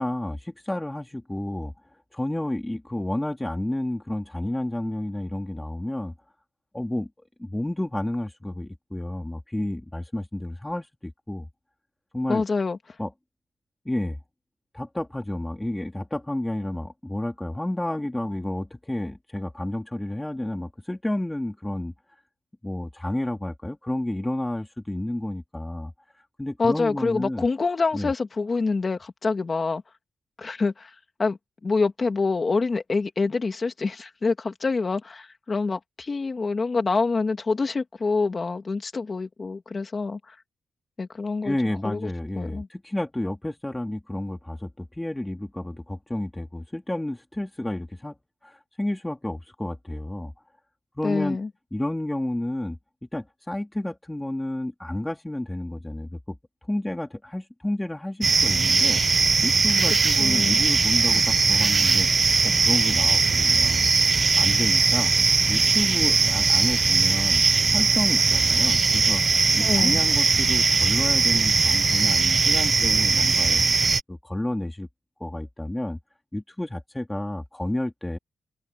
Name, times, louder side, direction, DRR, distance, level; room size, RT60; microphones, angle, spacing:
voice 1, 0.0-1.7 2.1-6.1 6.7-7.1 7.4-11.5 12.1-12.4 13.0-13.1 13.8-14.2 14.7-21.9 22.6-25.9 26.4-27.5 27.9-28.1 41.4-48.2 48.4-50.3 51.0-51.4 51.7-52.8 53.1-56.4 56.7-59.0 59.4-62.1 62.4-63.9 64.4-65.1 65.5-67.4 67.7-69.2 69.5-73.6 74.1-74.9 75.2-76.0 76.3-78.2, left 1 dB, 10° left, 3.1 m, -30 dB
voice 2, 12.3-12.8 26.6-29.8 30.4-40.4 41.0-41.6 41.8-42.1 42.4-42.7 51.0-51.5 59.9-60.6 69.6-70.0, left 4 dB, 35° left, 2.4 m, -26 dB
sound 1, 58.2-74.0, right 4 dB, 35° right, 0.6 m, -20 dB
open air
wide cardioid pair, 120°, 0 cm